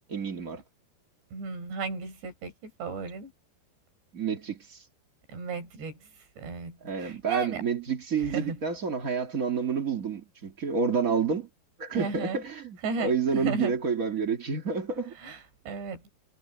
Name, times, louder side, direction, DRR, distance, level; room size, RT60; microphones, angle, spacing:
voice 1, 0.1-0.6 4.1-4.8 6.8-11.5 11.8-15.1, right 5 dB, 45° right, 1.1 m, -29 dB
voice 2, 1.3-2.5 2.8-3.3 5.3-6.0 6.4-7.6 8.2-8.6 11.9-12.4 12.8-13.7 15.2-16.1, right 4 dB, 75° right, 8.1 m, -34 dB
omnidirectional pair, 5.0 m